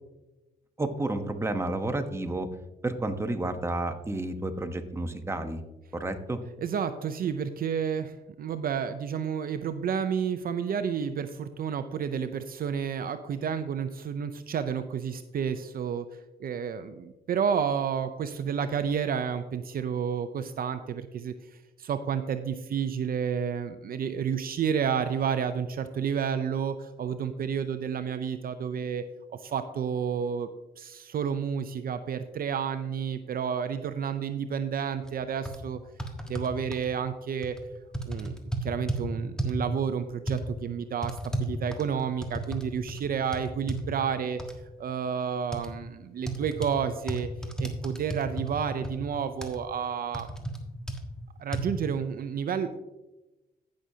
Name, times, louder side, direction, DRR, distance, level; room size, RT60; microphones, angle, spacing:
voice 1, 0.8-2.5 2.8-5.6 5.9-6.4, right 2 dB, 15° right, 6 dB, 1.0 m, -31 dB
voice 2, 6.6-16.1 16.4-29.0 29.3-30.5 30.8-35.8 36.3-37.6 38.1-44.4 44.8-47.3 47.6-50.3 51.4-52.8, right 7 dB, 55° right, 10 dB, 0.6 m, -30 dB
sound 1, 35.0-35.1 35.4-35.6 36.0-36.8 37.4-37.6 37.9-39.0 39.4-39.6 40.3-40.4 41.0-42.6 42.9-43.0 43.3-43.8 44.4-44.5 45.5-45.7 46.3-46.7 47.1-48.5 48.8-48.9 49.4-49.6 50.1-50.6 50.9-51.0 51.5-51.6, right 2 dB, 5° left, 1.4 m, -32 dB
15.0 x 6.4 x 2.8 m, 1.0 s
cardioid pair, 70°, 18 cm